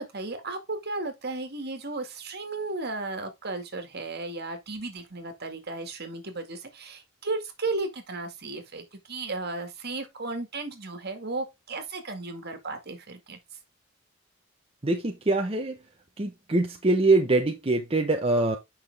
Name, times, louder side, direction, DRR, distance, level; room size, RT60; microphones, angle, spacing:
voice 1, 0.0-13.4, right 3 dB, 55° right, 2.1 m, -34 dB
voice 2, 14.8-15.8 16.2-18.6, right 2 dB, 30° right, 0.9 m, -24 dB
8.9 x 5.8 x 3.5 m
head